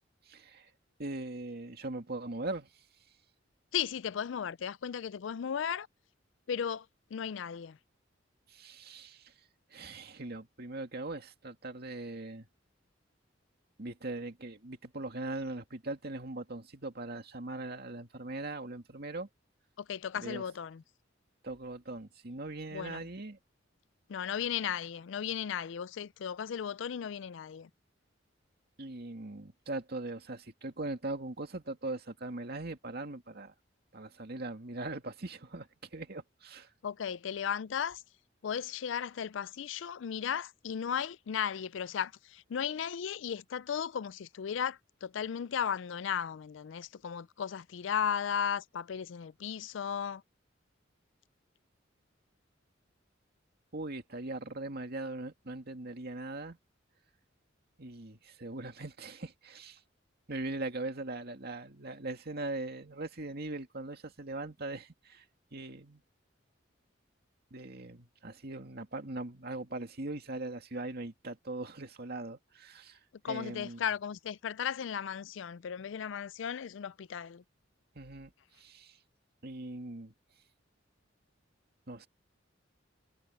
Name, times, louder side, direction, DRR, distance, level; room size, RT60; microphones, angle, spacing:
voice 1, 0.3-0.7 1.0-2.7 8.5-9.3 9.7-12.5 13.8-19.3 20.1-20.4 21.4-23.4 28.8-33.5 33.9-36.7 53.7-56.6 57.8-59.8 60.3-65.2 65.5-66.0 67.5-73.0 73.3-73.8 78.0-78.3 78.6-79.0 79.4-80.1 81.9-82.1, right 2 dB, 55° right, 2.2 m, -40 dB
voice 2, 3.7-5.9 6.5-6.9 7.1-7.8 19.8-20.8 22.7-23.1 24.1-27.7 36.8-38.0 38.4-50.2 73.2-77.4, left 8 dB, 70° left, 0.4 m, -35 dB
head